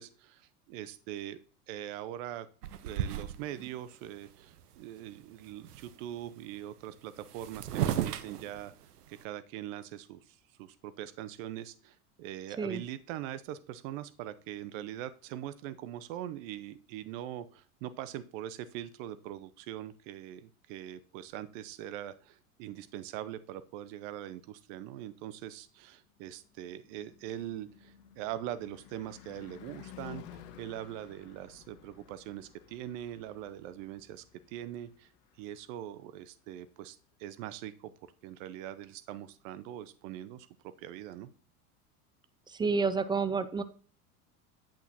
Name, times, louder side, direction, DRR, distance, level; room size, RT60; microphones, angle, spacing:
voice 1, 0.0-1.4 1.7-2.5 2.8-8.7 9.1-35.1 35.4-37.9 38.2-40.5 40.8-41.3, right 12 dB, 55° right, 14 dB, 0.8 m, -42 dB
sound 1, 2.6-3.7 4.3-4.4 4.6-5.1 5.3-6.0 6.9-7.0 7.2-9.2, right 10 dB, 85° right, 0.9 m, -35 dB
Car passing by / Truck / Engine, 25.9-36.2, left 11 dB, 55° left, 1.4 m, -54 dB
voice 2, 42.5-43.6, right 4 dB, 10° right, 13 dB, 0.3 m, -29 dB
8.8 x 8.2 x 2.9 m, 0.41 s
hypercardioid pair, 90°, 45 cm